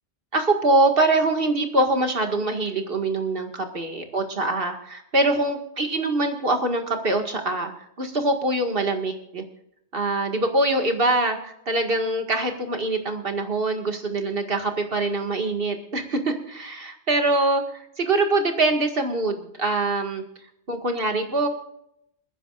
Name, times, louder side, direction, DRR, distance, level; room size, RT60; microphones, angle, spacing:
voice 1, 0.3-7.7 8.0-9.4 9.9-20.2 20.7-21.5, right 2 dB, 55° right, 4 dB, 2.1 m, -24 dB
28.5 x 10.0 x 2.5 m, 0.76 s
omnidirectional pair, 1.1 m